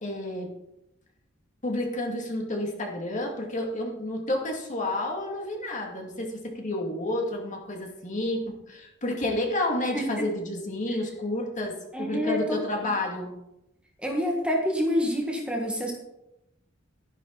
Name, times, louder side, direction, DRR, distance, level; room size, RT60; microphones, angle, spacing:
voice 1, 0.0-0.5 1.6-13.4, left 1 dB, 40° left, 1 dB, 2.4 m, -30 dB
voice 2, 11.9-12.9 14.0-15.9, equal, 5° right, 0 dB, 1.8 m, -27 dB
12.0 x 10.5 x 4.1 m, 0.86 s
head